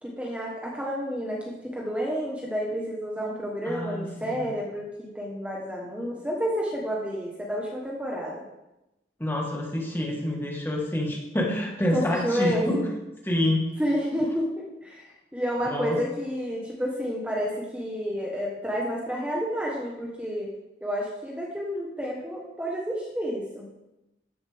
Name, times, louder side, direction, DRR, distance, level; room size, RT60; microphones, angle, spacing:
voice 1, 0.0-8.4 11.9-12.9 13.8-20.5 20.8-23.7, equal, 5° right, -3 dB, 1.3 m, -30 dB
voice 2, 3.7-4.5 9.2-12.8 13.2-13.7 15.7-16.0, left 1 dB, 10° left, -1 dB, 1.5 m, -27 dB
14.5 x 7.2 x 3.6 m, 0.94 s
head